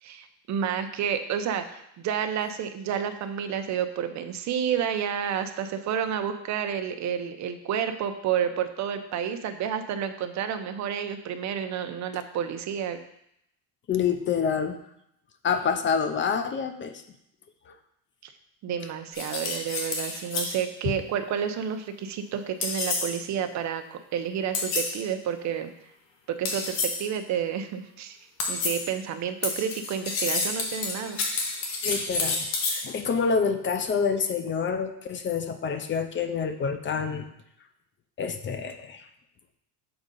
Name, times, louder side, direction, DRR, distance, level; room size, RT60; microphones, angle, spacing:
voice 1, 0.0-13.0 18.2-18.3 18.6-25.7 26.3-28.2 28.5-31.2, right 8 dB, 40° right, 7 dB, 0.7 m, -30 dB
voice 2, 13.9-14.8 15.4-17.0 17.7-17.8 20.8-20.9 31.8-37.3 38.2-39.1, left 6 dB, 30° left, 9 dB, 0.5 m, -27 dB
sound 1, 19.1-20.6 22.6-23.2 24.5-25.0 26.5-27.1 28.4-28.9 29.4-32.9, left 3 dB, 85° left, 1.5 m, -29 dB
7.0 x 3.7 x 5.2 m, 0.77 s
cardioid pair, 130°, 43 cm